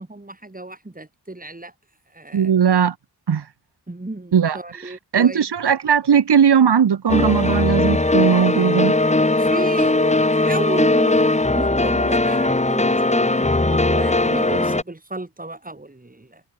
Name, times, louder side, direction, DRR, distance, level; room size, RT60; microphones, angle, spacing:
voice 1, 0.0-1.7 2.1-2.5 3.9-5.4 9.3-16.4, right 2 dB, 20° right, 5.9 m, -33 dB
voice 2, 2.3-3.0 3.3-3.5 4.3-9.0, right 7 dB, 75° right, 2.2 m, -18 dB
sound 1, 7.1-14.8, left 2 dB, 15° left, 1.6 m, -19 dB
open air
cardioid pair, 60°, 40 cm